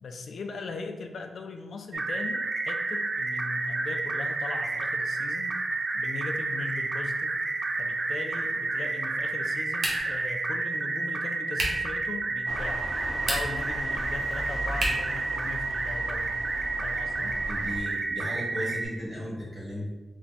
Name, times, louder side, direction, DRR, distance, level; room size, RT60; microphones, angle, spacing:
voice 1, 0.0-5.6 5.9-7.4 7.8-16.3 16.8-17.4, left 4 dB, 80° left, 5 dB, 0.3 m, -39 dB
sound 1, 1.9-18.8, right 3 dB, 45° right, 0.4 m, -30 dB
sound 2, 9.8-10.3 11.5-11.9 13.1-13.7 14.8-15.2, right 1 dB, 65° right, 0.8 m, -30 dB
sound 3, 12.5-17.8, equal, 15° left, 0.4 m, -38 dB
voice 2, 17.5-19.9, equal, 25° right, -6 dB, 1.2 m, -35 dB
3.4 x 2.2 x 4.0 m, 1.2 s
wide cardioid pair, 165°, 0 cm